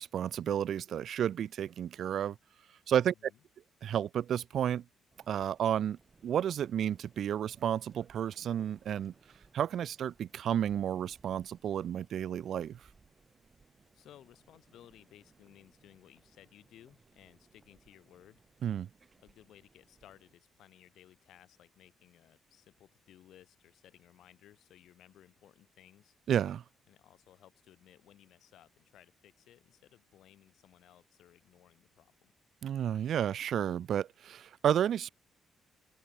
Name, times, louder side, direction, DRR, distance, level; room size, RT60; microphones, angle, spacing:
voice 1, 0.0-2.4 2.9-3.1 3.8-4.8 5.3-9.1 9.5-12.8 18.6-18.9 26.3-26.6 32.6-35.1, right 9 dB, 65° right, 0.6 m, -31 dB
voice 2, 3.1-3.4 13.9-18.4 19.2-26.2 26.9-32.3, left 12 dB, 75° left, 7.5 m, -59 dB
sound 1, 5.1-20.3, right 4 dB, 35° right, 4.5 m, -65 dB
cardioid pair, 90°, 0 cm